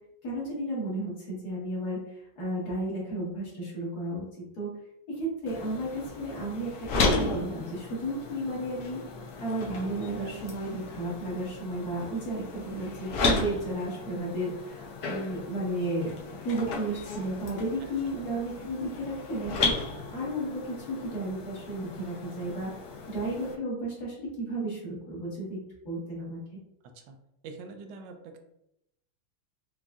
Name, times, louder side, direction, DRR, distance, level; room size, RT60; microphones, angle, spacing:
voice 1, 0.2-4.3 4.6-4.7 5.1-9.0 9.4-16.1 16.4-22.7 23.1-26.4, right 1 dB, 50° left, -6 dB, 1.9 m, -33 dB
sound 1, 5.5-23.5, left 3 dB, 65° left, 1.0 m, -34 dB
voice 2, 27.4-28.4, right 4 dB, 75° right, 5 dB, 1.1 m, -44 dB
5.0 x 3.1 x 2.4 m, 0.82 s
omnidirectional pair, 2.3 m